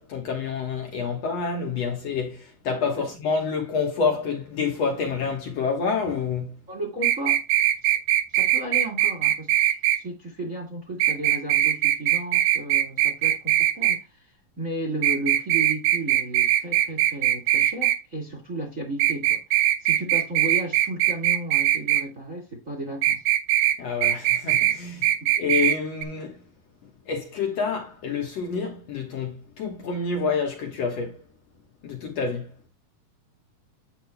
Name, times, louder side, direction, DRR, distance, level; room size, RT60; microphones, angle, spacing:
voice 1, 0.0-6.6 23.8-25.1 25.4-26.4 27.1-31.2 31.8-32.5, left 5 dB, 55° left, 2.2 m, -28 dB
voice 2, 6.7-7.4 7.8-7.9 8.3-23.2 25.2-25.3, right 1 dB, 30° right, 1.9 m, -34 dB
sound 1, 7.0-10.0 11.0-14.0 15.0-18.0 19.0-22.0 23.0-23.8 24.0-24.8 25.0-25.8 26.0-26.1, right 13 dB, 85° right, 2.5 m, -21 dB
10.5 x 7.7 x 2.3 m
omnidirectional pair, 4.0 m